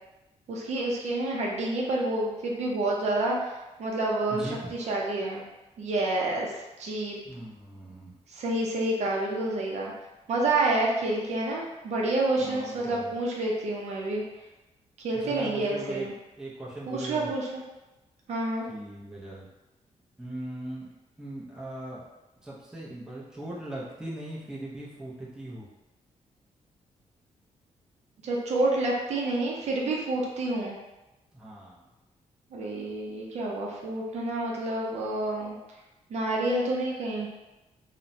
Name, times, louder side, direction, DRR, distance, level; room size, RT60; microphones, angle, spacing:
voice 1, 0.5-5.4 5.8-7.2 8.3-9.9 10.3-14.2 15.0-16.1 16.9-17.6 18.3-18.7 28.2-30.8 32.5-35.6 36.1-37.3, right 2 dB, 65° right, -2 dB, 0.5 m, -28 dB
voice 2, 4.3-4.7 7.2-8.1 12.4-13.1 15.1-16.1 16.4-17.3 18.7-19.5 20.2-20.9 21.2-22.0 22.4-25.7 31.3-31.8, right 1 dB, 5° right, -6 dB, 0.5 m, -39 dB
2.9 x 2.0 x 2.6 m, 1.0 s
wide cardioid pair, 145°, 12 cm